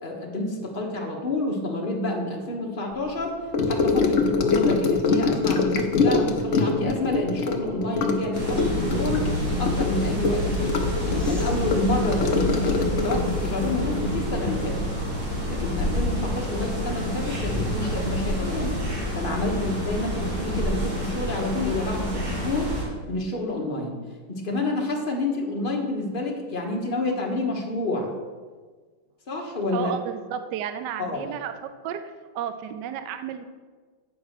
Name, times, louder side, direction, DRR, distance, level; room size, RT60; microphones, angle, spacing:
voice 1, 0.0-3.4 3.7-14.8 15.5-18.8 19.1-22.8 23.1-23.9 24.3-28.1 29.3-29.9 31.0-31.3, left 2 dB, 30° left, 0 dB, 1.1 m, -29 dB
Gurgling / Sink (filling or washing) / Trickle dribble, 3.5-15.2 15.4-15.8 16.0-16.1, left 4 dB, 65° left, 0.7 m, -24 dB
sound 1, 8.3-22.8, equal, 55° right, 3.2 m, -28 dB
sound 2, 11.1-13.9 14.5-14.6 17.3-18.6 20.4-20.5, left 1 dB, ahead, 0.5 m, -37 dB
voice 2, 29.7-31.5 31.8-33.5, right 9 dB, 75° right, 9 dB, 1.0 m, -32 dB
8.7 x 4.7 x 6.5 m, 1.4 s
omnidirectional pair, 2.3 m